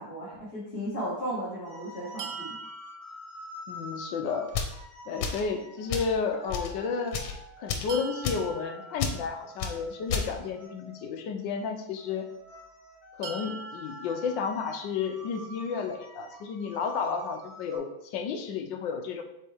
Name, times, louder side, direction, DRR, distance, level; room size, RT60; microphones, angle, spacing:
voice 1, 0.0-2.6, equal, 30° left, -8 dB, 1.8 m, -35 dB
sound 1, 1.7-11.2 12.0-17.8, equal, 45° left, 2.9 m, -47 dB
sound 2, 2.2-4.1 7.9-10.0 13.2-15.3, right 4 dB, 80° right, 1.5 m, -44 dB
voice 2, 3.7-4.5 5.1-7.2 7.6-12.3 13.2-19.2, left 5 dB, 70° left, 6 dB, 1.3 m, -32 dB
sound 3, 4.5-4.8 5.2-5.5 5.9-6.1 6.5-6.7 7.1-7.3 7.7-7.9 8.2-8.5 9.0-9.2 9.6-9.7 10.1-10.3, left 6 dB, 85° left, 1.7 m, -31 dB
7.4 x 4.4 x 3.4 m, 0.82 s
omnidirectional pair, 2.3 m